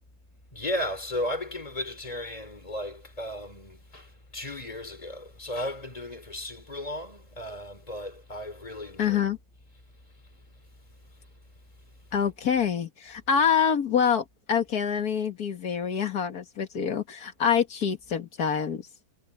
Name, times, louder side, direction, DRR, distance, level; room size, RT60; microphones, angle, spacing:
voice 1, 0.5-9.2, left 1 dB, 20° left, 3.8 m, -35 dB
voice 2, 9.0-9.4 12.1-18.9, left 7 dB, 55° left, 2.1 m, -26 dB
omnidirectional pair, 1.9 m